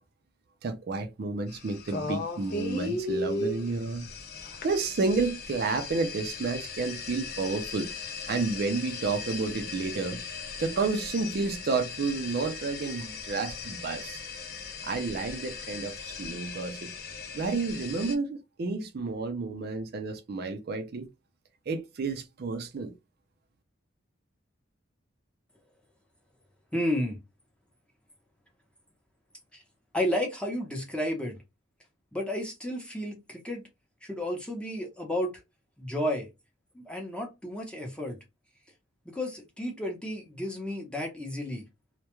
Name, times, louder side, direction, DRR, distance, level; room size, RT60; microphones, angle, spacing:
voice 1, 0.6-4.1 4.6-7.9 8.3-10.2 10.6-14.2 14.8-16.9 17.3-21.1 21.7-22.9, right 4 dB, 50° right, 0.4 m, -31 dB
sound 1, 1.5-18.1, left 3 dB, 50° left, 0.5 m, -38 dB
voice 2, 26.7-27.2 29.5-29.6 29.9-31.4 32.1-33.6 34.0-35.4 35.8-36.3 36.7-38.2 39.1-41.6, left 1 dB, 5° left, 0.7 m, -32 dB
2.2 x 2.1 x 2.9 m
head